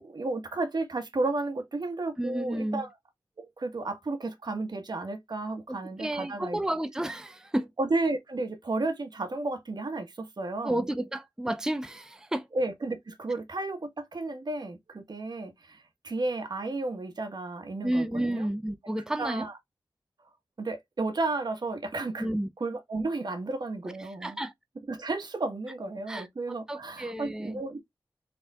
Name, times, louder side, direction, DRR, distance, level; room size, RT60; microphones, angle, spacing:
voice 1, 0.0-2.9 3.4-6.6 7.8-10.9 12.5-18.5 19.2-19.5 20.6-22.3 22.6-24.4 24.9-27.8, right 2 dB, 60° right, 1.2 m, -33 dB
voice 2, 2.2-2.9 6.0-7.7 10.6-12.5 17.8-19.5 22.2-22.5 24.2-24.5 26.1-27.6, right 1 dB, 10° right, 0.5 m, -31 dB
4.0 x 3.5 x 2.2 m
cardioid pair, 40°, 8 cm